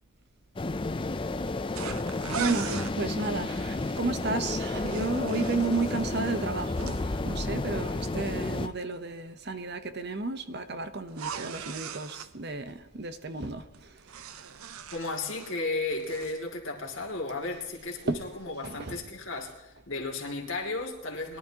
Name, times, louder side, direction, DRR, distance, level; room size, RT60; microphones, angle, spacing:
sound 1, 0.6-8.7, left 2 dB, 25° left, 0.4 m, -31 dB
sound 2, 1.8-3.0 4.6-7.0 11.1-12.3 13.7-15.6 15.9-16.4, right 7 dB, 80° right, 0.6 m, -39 dB
voice 1, 2.4-13.9 18.1-18.2 18.6-18.9, right 3 dB, 50° right, 10 dB, 0.8 m, -32 dB
voice 2, 14.9-21.4, left 3 dB, 65° left, 1 dB, 2.5 m, -34 dB
21.5 x 11.5 x 2.9 m, 1.1 s
head